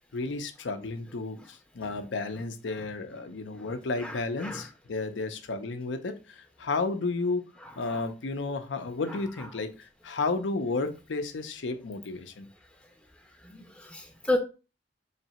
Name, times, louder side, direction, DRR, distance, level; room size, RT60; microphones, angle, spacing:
voice 1, 0.1-7.4 7.8-12.5, left 3 dB, 90° left, 8 dB, 0.6 m, -32 dB
voice 2, 4.0-4.6 7.6-8.0 13.4-14.4, left 2 dB, 5° left, 3 dB, 0.5 m, -33 dB
3.3 x 2.8 x 4.2 m, 0.31 s
head